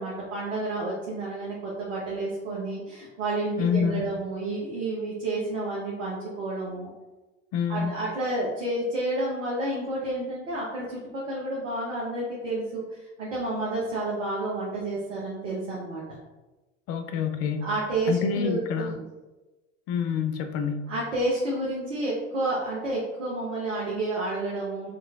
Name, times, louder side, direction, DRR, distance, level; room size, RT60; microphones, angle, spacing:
voice 1, 0.0-6.9 7.7-16.0 17.6-19.0 20.9-24.9, right 2 dB, 80° right, -5 dB, 0.9 m, -30 dB
voice 2, 3.6-4.0 7.5-7.9 16.9-17.7 18.1-19.0 19.9-20.9, left 6 dB, 40° left, 7 dB, 0.5 m, -27 dB
5.0 x 3.0 x 2.4 m, 1.1 s
figure-of-eight pair, 70°, 37 cm